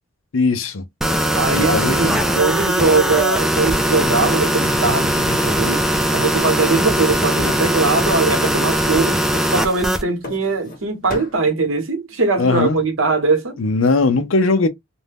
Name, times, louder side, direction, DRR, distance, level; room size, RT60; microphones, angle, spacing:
voice 1, 0.3-0.9 1.5-2.2 12.4-12.8 13.6-14.7, left 3 dB, 75° left, 0.6 m, -19 dB
sound 1, 1.0-10.0, equal, ahead, 0.3 m, -20 dB
voice 2, 1.3-5.8 6.1-9.2 9.5-13.5, right 3 dB, 80° right, 1.0 m, -20 dB
sound 2, 4.2-6.2 6.4-7.2 7.5-8.1 8.4-9.0 9.3-10.8 11.1-11.4, left 2 dB, 45° left, 1.1 m, -36 dB
2.6 x 2.2 x 3.3 m
head